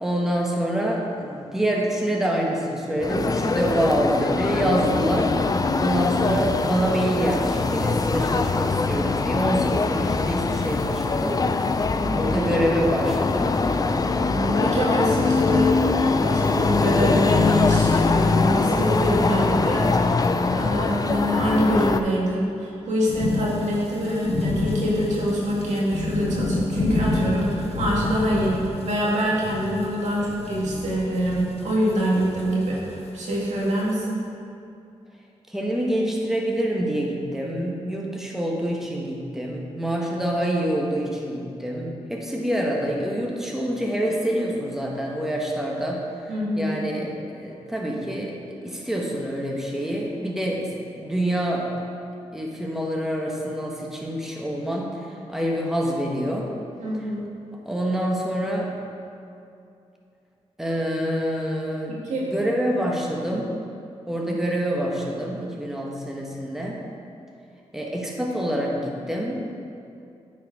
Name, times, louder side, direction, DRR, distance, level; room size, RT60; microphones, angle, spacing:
voice 1, 0.0-11.4 12.1-13.5 35.5-48.4 48.6-51.7 52.3-56.5 57.6-58.7 60.6-63.5 64.1-66.8 67.7-69.6, right 1 dB, 5° right, -2 dB, 1.2 m, -26 dB
sound 1, 3.0-22.0, left 4 dB, 30° left, 0.4 m, -22 dB
voice 2, 11.9-12.3 14.2-19.9 20.5-34.2 46.3-46.7 56.8-57.3 62.0-62.2, equal, 85° right, -5 dB, 2.0 m, -25 dB
sound 2, 23.1-33.9, left 2 dB, 55° left, 0.8 m, -29 dB
9.2 x 4.7 x 4.8 m, 2.5 s
cardioid pair, 65°, 12 cm